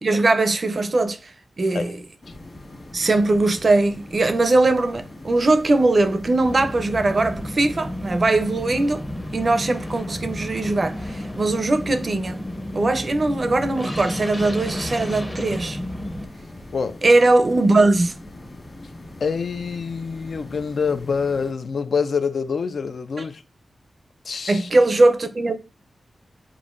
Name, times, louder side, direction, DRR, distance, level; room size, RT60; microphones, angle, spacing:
voice 1, 0.0-2.0 2.9-9.0 9.3-12.4 12.7-15.8 17.0-18.1 24.5-25.6, right 2 dB, 40° right, 0.4 m, -20 dB
sound 1, 2.2-21.5, left 1 dB, 35° left, 1.3 m, -42 dB
sound 2, 6.4-16.2, left 1 dB, 15° left, 0.6 m, -32 dB
voice 2, 19.2-23.4 24.3-24.7, left 5 dB, 70° left, 0.3 m, -26 dB
6.9 x 2.5 x 2.4 m
wide cardioid pair, 135°, 0 cm